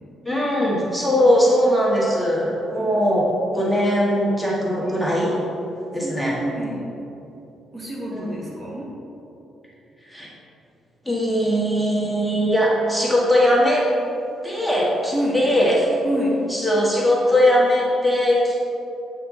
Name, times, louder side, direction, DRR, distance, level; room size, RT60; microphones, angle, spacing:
voice 1, 0.2-5.4 5.9-6.3 8.1-8.4 10.1-10.3 11.0-13.9 14.4-16.0 16.5-18.6, equal, ahead, -5 dB, 1.4 m, -20 dB
voice 2, 6.0-6.9 7.7-8.9 15.1-15.4 16.0-16.4, equal, 30° right, -4 dB, 1.5 m, -27 dB
8.6 x 4.5 x 3.8 m, 2.9 s
cardioid pair, 90°, 0 cm